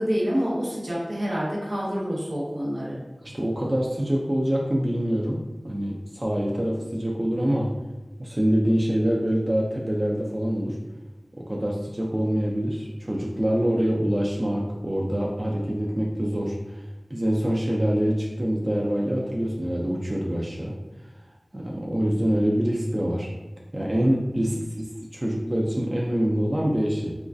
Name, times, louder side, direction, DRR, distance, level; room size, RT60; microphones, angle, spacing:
voice 1, 0.0-3.0, equal, 85° right, -6 dB, 1.0 m, -27 dB
voice 2, 3.2-7.7 8.2-10.8 11.5-20.7 21.5-23.3 23.7-24.6 25.1-27.2, equal, 40° right, -3 dB, 0.4 m, -25 dB
3.1 x 2.3 x 2.5 m, 1.1 s
wide cardioid pair, 55°, 0 cm